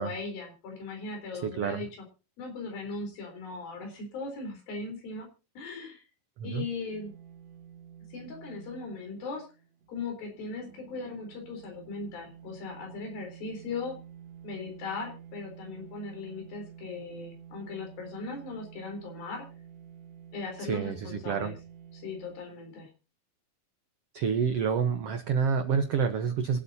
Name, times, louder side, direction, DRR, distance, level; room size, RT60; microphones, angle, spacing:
voice 1, 0.0-1.9 2.4-5.3 5.6-6.0 6.4-7.1 8.1-9.5 9.9-14.0 14.4-19.5 20.3-21.5 21.9-22.9, left 3 dB, 80° left, 2 dB, 5.7 m, -38 dB
voice 2, 1.4-1.9 6.4-6.7 20.6-21.6 24.1-26.6, right 6 dB, 85° right, 8 dB, 1.3 m, -28 dB
sound 1, 6.9-22.4, right 8 dB, 55° right, 2.6 m, -50 dB
25.0 x 8.4 x 2.7 m, 0.31 s
omnidirectional pair, 4.2 m